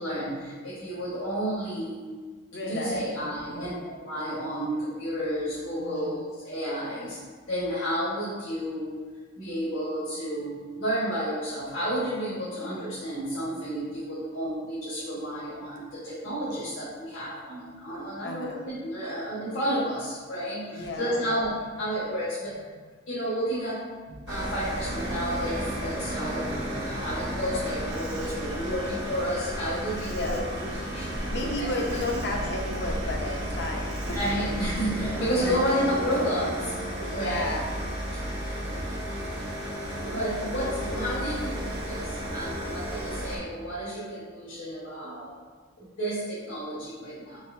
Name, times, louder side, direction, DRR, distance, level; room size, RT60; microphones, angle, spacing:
voice 1, 0.0-2.1 2.6-3.7 4.0-7.2 7.5-8.9 9.3-22.6 23.1-26.5 26.8-30.4 30.9-31.1 31.4-31.6 34.1-36.8 37.1-37.5 40.0-45.3 45.8-47.4, equal, 75° left, -11 dB, 1.3 m, -31 dB
voice 2, 2.5-3.9 5.8-6.2 18.2-18.7 20.7-21.3 30.1-30.7 31.3-34.2 35.4-35.6 37.0-37.8, left 1 dB, 55° left, 1 dB, 0.6 m, -33 dB
sound 1, 24.3-43.4, right 1 dB, 55° right, 0.8 m, -33 dB
sound 2, 25.0-29.1 29.4-37.6, right 2 dB, 25° right, 0.4 m, -40 dB
Insect, 27.9-36.3, equal, 75° right, 1.0 m, -41 dB
4.1 x 4.0 x 2.6 m, 1.5 s
head